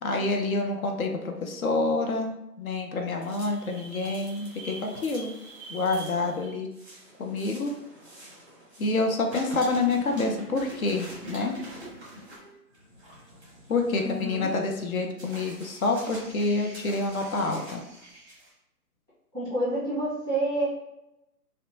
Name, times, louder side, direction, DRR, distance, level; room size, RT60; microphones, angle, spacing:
voice 1, 0.0-5.3 5.7-6.7 7.2-7.7 8.8-11.5 13.7-17.8, left 3 dB, 60° left, 3 dB, 0.6 m, -27 dB
sound 1, 3.1-9.0 9.3-18.5, right 1 dB, 15° right, 0.6 m, -45 dB
voice 2, 13.9-14.5 19.3-20.7, right 2 dB, 10° left, -14 dB, 1.2 m, -28 dB
2.6 x 2.2 x 2.6 m, 0.90 s
figure-of-eight pair, 135°, 48 cm